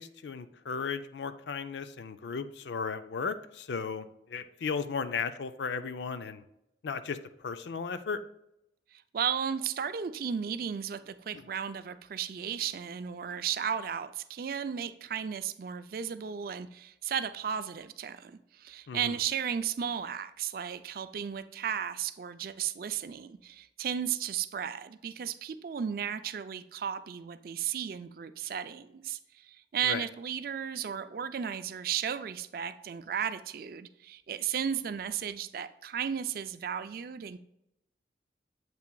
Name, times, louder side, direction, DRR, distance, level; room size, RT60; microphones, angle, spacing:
voice 1, 0.0-6.4 6.8-8.2 11.3-11.4 18.9-19.1 29.8-30.0, left 5 dB, 75° left, 11 dB, 0.4 m, -35 dB
voice 2, 8.9-37.4, right 8 dB, 55° right, 12 dB, 0.3 m, -34 dB
7.6 x 5.7 x 2.3 m, 0.82 s
head